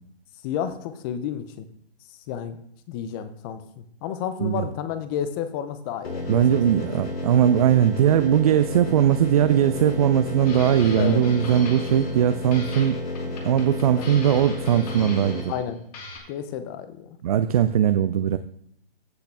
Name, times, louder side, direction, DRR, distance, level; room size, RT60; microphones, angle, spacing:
voice 1, 0.4-1.7 2.3-2.6 2.9-6.6 11.0-11.2 13.9-14.2 15.5-15.8 16.3-17.1, left 9 dB, 20° left, 11 dB, 0.7 m, -31 dB
sound 1, 6.0-15.4, left 2 dB, 75° left, 2.7 m, -31 dB
voice 2, 6.3-13.0 13.4-15.5 17.2-18.4, right 10 dB, 40° right, 11 dB, 0.4 m, -20 dB
sound 2, 10.4-12.2 12.5-15.7 15.9-16.2, left 3 dB, 40° left, 2.5 m, -41 dB
15.0 x 5.8 x 3.4 m, 0.66 s
hypercardioid pair, 140°, 31 cm